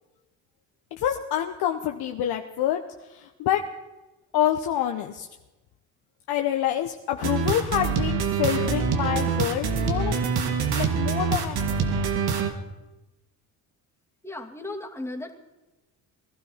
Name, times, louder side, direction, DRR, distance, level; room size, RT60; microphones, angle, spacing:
voice 1, 0.9-3.6 4.3-5.3 6.3-11.9, left 11 dB, 70° left, 4 dB, 1.1 m, -27 dB
sound 1, 7.2-12.5, right 6 dB, 65° right, 2.1 m, -25 dB
voice 2, 14.2-15.3, left 2 dB, 5° left, 1 dB, 2.5 m, -35 dB
19.5 x 12.0 x 5.7 m, 1.1 s
supercardioid pair, 75°, 40 cm